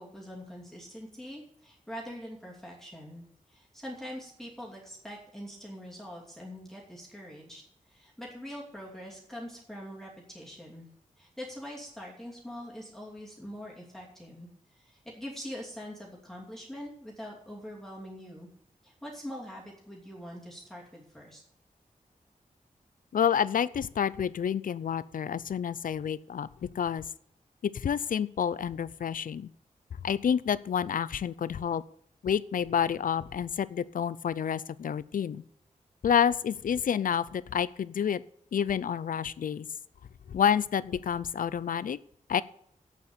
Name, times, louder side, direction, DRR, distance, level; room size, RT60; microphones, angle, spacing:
voice 1, 0.0-7.6 7.9-10.9 11.2-18.5 18.8-21.4, equal, 5° left, -4 dB, 2.8 m, -43 dB
voice 2, 23.1-27.0 27.6-29.5 30.0-31.8 32.2-35.4 36.0-38.2 38.5-39.7 40.3-42.0 42.3-42.4, left 8 dB, 75° left, 18 dB, 0.5 m, -29 dB
8.4 x 8.0 x 8.4 m, 0.71 s
wide cardioid pair, 140°, 14 cm